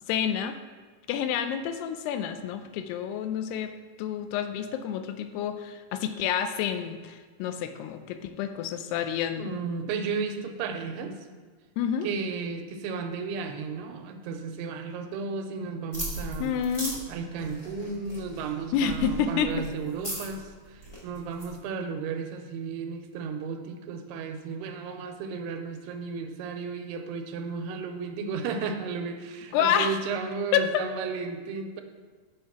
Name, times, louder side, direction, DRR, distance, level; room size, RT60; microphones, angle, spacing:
voice 1, 0.1-0.6 1.1-3.7 4.0-9.5 11.8-12.1 16.4-17.0 18.7-19.7 29.5-30.0 30.5-30.9, left 8 dB, 85° left, 9 dB, 2.6 m, -28 dB
voice 2, 9.4-11.2 12.0-16.6 17.1-31.8, right 5 dB, 85° right, 5 dB, 2.6 m, -34 dB
sound 1, 15.9-21.6, right 1 dB, 65° left, 0.3 m, -38 dB
6.4 x 6.4 x 5.7 m, 1.5 s
omnidirectional pair, 4.7 m